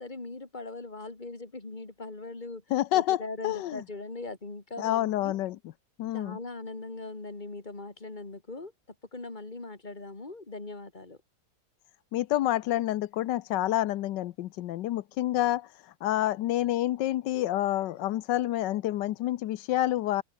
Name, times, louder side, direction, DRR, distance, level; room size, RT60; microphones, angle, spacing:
voice 1, 0.0-2.6 2.9-5.4 6.1-11.2, left 3 dB, 25° left, 2.9 m, -40 dB
voice 2, 2.7-3.8 4.8-5.6 6.0-6.4 12.1-15.7 16.0-20.2, left 14 dB, 90° left, 1.4 m, -28 dB
open air
omnidirectional pair, 1.9 m